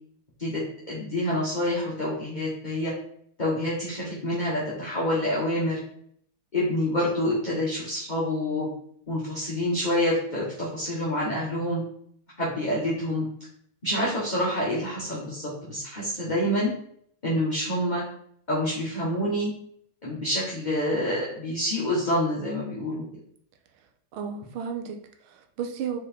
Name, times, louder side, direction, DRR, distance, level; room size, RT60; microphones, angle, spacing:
voice 1, 0.9-2.9 3.4-5.8 6.5-8.7 9.1-11.8 12.4-13.3 13.8-16.7 17.2-18.0 18.5-19.5 20.0-23.0, left 1 dB, 25° left, -6 dB, 1.3 m, -27 dB
voice 2, 24.1-26.0, right 7 dB, 75° right, 4 dB, 1.6 m, -33 dB
4.7 x 4.7 x 4.4 m, 0.65 s
omnidirectional pair, 2.4 m